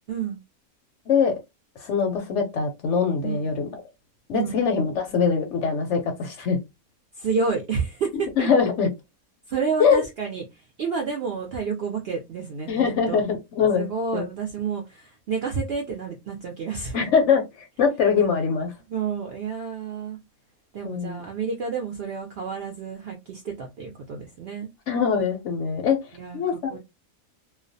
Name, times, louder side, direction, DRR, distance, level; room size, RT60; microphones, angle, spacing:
voice 1, 0.1-0.4 3.2-3.5 4.3-4.6 7.2-8.5 9.5-12.7 13.1-13.2 13.7-17.0 18.9-20.2 20.7-24.7 26.1-26.4 26.7-26.8, right 5 dB, 70° right, 0.6 m, -30 dB
voice 2, 1.1-1.4 1.8-3.7 4.3-6.6 8.4-8.9 9.8-10.0 12.7-13.9 14.1-14.3 16.9-17.5 17.8-18.7 20.8-21.2 24.9-26.0 26.3-26.8, left 6 dB, 65° left, 0.8 m, -22 dB
2.3 x 2.1 x 2.5 m
omnidirectional pair, 1.5 m